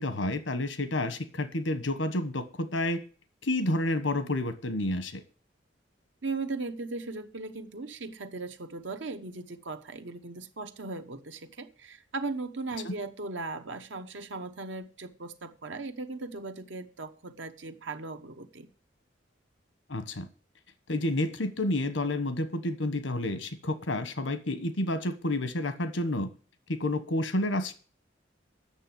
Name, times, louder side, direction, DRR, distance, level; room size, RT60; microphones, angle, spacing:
voice 1, 0.0-3.0 3.4-5.2 12.8-13.0 19.9-20.3 20.9-26.3 26.7-27.7, left 1 dB, 85° left, 11 dB, 1.3 m, -30 dB
voice 2, 6.2-18.7, right 3 dB, 75° right, 7 dB, 1.0 m, -38 dB
8.9 x 6.9 x 8.4 m, 0.38 s
head